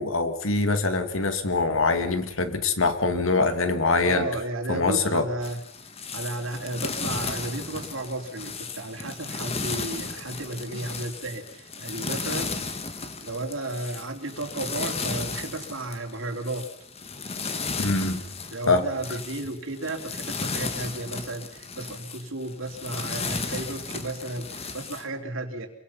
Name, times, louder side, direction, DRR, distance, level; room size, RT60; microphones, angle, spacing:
voice 1, 0.0-4.3 4.7-5.3 17.8-18.2 18.7-18.9, left 3 dB, 75° left, 9 dB, 2.2 m, -24 dB
voice 2, 4.0-5.6 6.1-12.8 13.2-16.7 18.5-25.7, right 2 dB, 75° right, 4 dB, 3.3 m, -33 dB
sound 1, 5.4-25.1, left 4 dB, 30° left, 1.7 m, -34 dB
27.0 x 23.0 x 5.7 m, 0.73 s
head